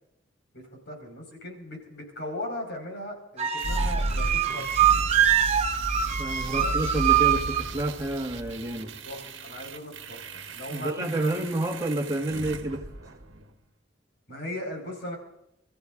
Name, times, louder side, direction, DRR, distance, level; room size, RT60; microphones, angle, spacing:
voice 1, 0.5-4.9 6.6-6.9 9.0-11.5 14.3-15.2, left 1 dB, 65° left, 5.3 m, -38 dB
sound 1, 3.4-7.7, right 10 dB, 35° right, 1.0 m, -24 dB
sound 2, 3.6-13.5, right 1 dB, 80° right, 1.2 m, -34 dB
voice 2, 6.2-8.9 10.7-12.9, right 1 dB, 20° right, 1.6 m, -29 dB
28.5 x 14.5 x 2.6 m
head